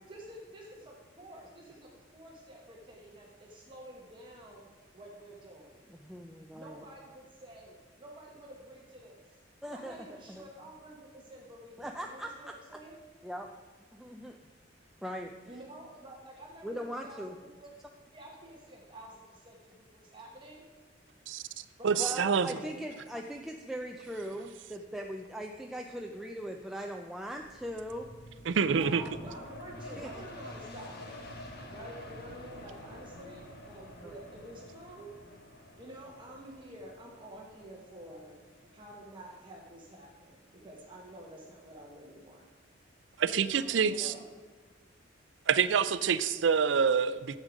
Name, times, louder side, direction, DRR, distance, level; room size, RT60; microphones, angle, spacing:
voice 1, 0.1-4.6 4.9-5.8 6.5-9.4 9.7-13.0 15.4-17.2 17.6-17.7 18.1-20.6 21.8-23.0 28.7-31.2 31.7-35.1 35.8-38.4 38.7-42.4 43.2-44.3, right 1 dB, 25° right, -2 dB, 1.1 m, -49 dB
voice 2, 5.9-6.8 9.6-10.4 11.8-12.5 13.2-13.5 13.9-14.4 15.0-15.3 16.6-17.3 22.0-28.1 29.8-30.1 34.0-34.1, equal, ahead, 2 dB, 0.4 m, -40 dB
voice 3, 21.8-22.6 28.5-29.0 43.2-44.1 45.5-47.4, right 6 dB, 70° right, 14 dB, 0.5 m, -26 dB
sound 1, 27.2-40.5 41.0-41.1, left 1 dB, 55° left, 1.3 m, -49 dB
10.0 x 7.4 x 5.0 m, 1.4 s
head